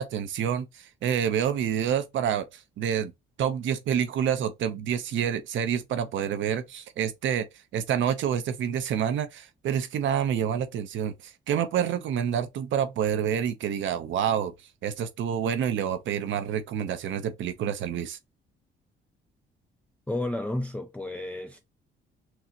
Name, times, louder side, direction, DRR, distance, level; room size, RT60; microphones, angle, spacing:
voice 1, 0.0-3.1 3.4-7.5 7.7-14.5 14.8-18.2, right 8 dB, 75° right, 0.8 m, -28 dB
voice 2, 20.1-21.6, left 1 dB, 5° left, 0.5 m, -31 dB
6.1 x 2.1 x 2.9 m
cardioid pair, 90°, 20 cm